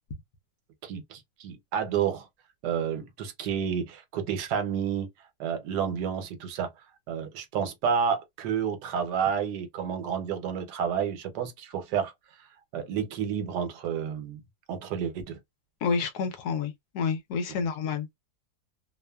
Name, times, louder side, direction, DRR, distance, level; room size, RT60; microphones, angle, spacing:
voice 1, 0.8-2.3 2.6-5.1 5.4-6.7 7.1-12.1 12.7-14.4 14.7-15.4, right 7 dB, 80° right, 1.2 m, -30 dB
voice 2, 15.8-18.1, left 5 dB, 75° left, 1.1 m, -29 dB
2.9 x 2.1 x 2.2 m
omnidirectional pair, 1.8 m